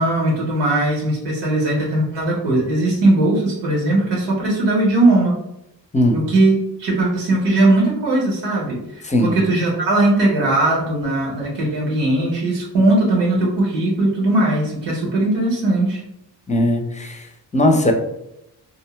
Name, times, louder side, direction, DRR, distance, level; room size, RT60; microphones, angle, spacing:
voice 1, 0.0-5.4 6.1-6.5 6.8-16.0, right 2 dB, 85° right, -3 dB, 1.1 m, -19 dB
voice 2, 9.0-9.4 16.5-17.9, left 1 dB, 15° left, 3 dB, 0.6 m, -18 dB
2.6 x 2.1 x 3.1 m, 0.83 s
supercardioid pair, 45°, 43 cm